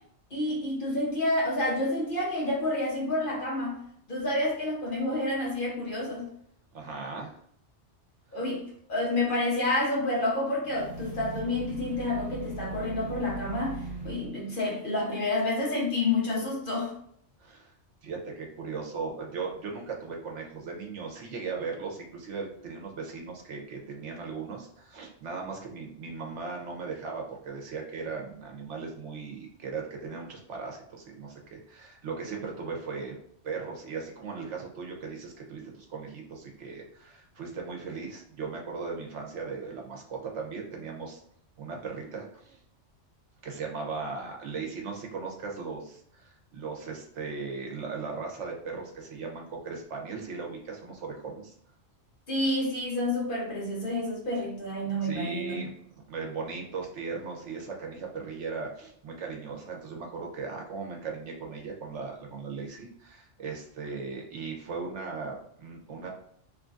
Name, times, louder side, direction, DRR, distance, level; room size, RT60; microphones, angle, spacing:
voice 1, 0.3-3.8 4.1-6.3 8.3-16.9 52.3-55.7, left 2 dB, 45° left, 1.2 m, -29 dB
voice 2, 6.7-7.3 17.4-17.7 18.0-33.2 33.4-41.2 41.6-42.6 43.4-51.5 55.0-55.7 56.1-66.2, right 4 dB, 80° right, 1.2 m, -38 dB
sound 1, 10.6-14.3, right 3 dB, 65° right, 1.4 m, -39 dB
3.7 x 3.1 x 2.5 m
omnidirectional pair, 1.2 m